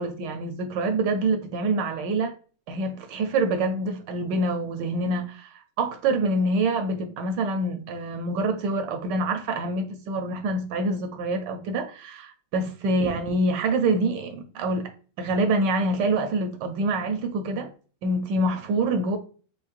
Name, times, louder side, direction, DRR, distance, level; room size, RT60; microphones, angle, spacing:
voice 1, 0.0-2.3 2.7-14.9 15.2-17.7 18.0-19.2, right 2 dB, 75° right, 1.0 m, -26 dB
5.4 x 2.1 x 2.4 m
omnidirectional pair, 2.3 m